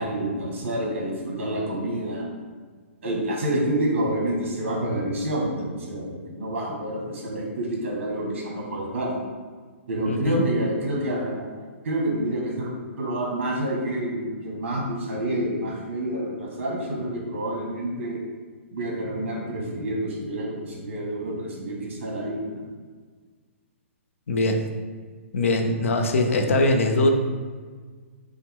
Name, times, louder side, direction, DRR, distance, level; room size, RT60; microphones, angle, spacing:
voice 1, 0.0-2.2 3.0-9.1 9.9-11.5 11.8-12.7 13.0-18.2 18.7-22.6, right 1 dB, 60° right, -2 dB, 1.4 m, -28 dB
voice 2, 10.1-10.4 24.3-24.6 25.3-27.1, left 2 dB, 75° left, 5 dB, 0.6 m, -21 dB
5.4 x 2.1 x 3.5 m, 1.5 s
hypercardioid pair, 165°, 7 cm